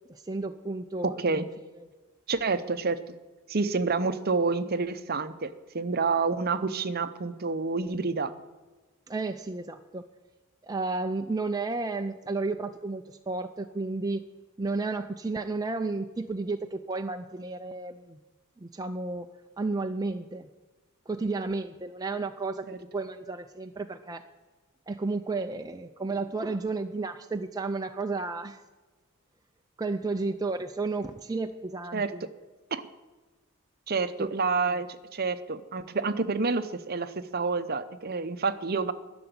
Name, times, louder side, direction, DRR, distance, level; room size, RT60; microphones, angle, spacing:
voice 1, 0.1-1.4 9.1-10.1 10.6-14.2 14.6-18.2 18.6-20.5 21.1-22.7 22.9-24.2 24.9-28.6 29.8-32.2 34.2-34.3 34.7-34.8, right 3 dB, 15° right, 5 dB, 0.4 m, -32 dB
voice 2, 1.0-1.5 2.3-3.1 3.5-8.3 22.7-22.8 31.9-32.1 32.7-32.8 33.9-38.9, right 4 dB, 45° right, 12 dB, 0.7 m, -28 dB
11.5 x 6.9 x 9.4 m, 1.3 s
head